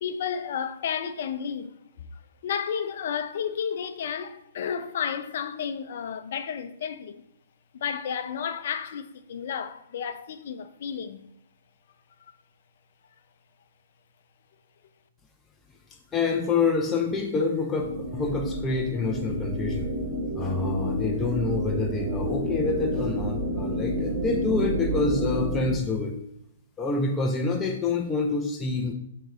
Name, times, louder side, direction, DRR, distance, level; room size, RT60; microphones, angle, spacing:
voice 1, 0.0-1.7 2.4-7.2 7.7-11.2, left 7 dB, 60° left, 0.6 m, -32 dB
voice 2, 16.1-19.9 20.3-26.2 26.8-28.9, left 4 dB, 15° left, 0.7 m, -27 dB
sound 1, 17.8-25.7, equal, 45° right, 1.3 m, -29 dB
10.5 x 3.9 x 3.1 m
hypercardioid pair, 135°, 0 cm